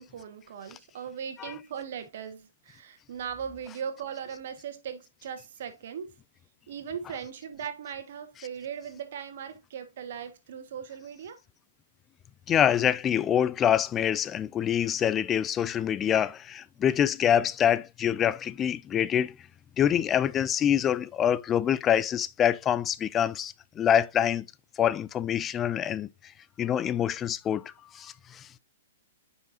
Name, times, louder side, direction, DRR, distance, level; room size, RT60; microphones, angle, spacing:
voice 1, 0.0-6.1 6.7-11.4, right 7 dB, 60° right, 1.6 m, -39 dB
voice 2, 12.5-19.3 19.8-24.5 24.8-26.1 26.6-28.5, left 9 dB, 20° left, 0.3 m, -25 dB
9.2 x 5.6 x 2.7 m
hypercardioid pair, 120°, 0 cm